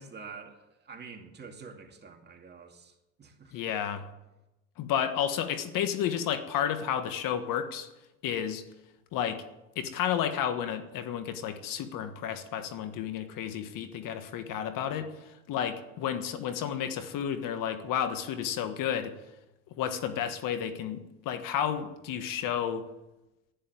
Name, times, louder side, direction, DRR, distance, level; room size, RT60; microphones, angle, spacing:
voice 1, 0.0-3.6, right 5 dB, 25° right, 2.4 m, -47 dB
voice 2, 3.5-4.1 4.8-7.9 8.2-8.6 9.1-9.4 9.7-19.1 19.8-22.8, left 9 dB, 55° left, 1.5 m, -31 dB
11.5 x 10.5 x 8.9 m
supercardioid pair, 110°, 39 cm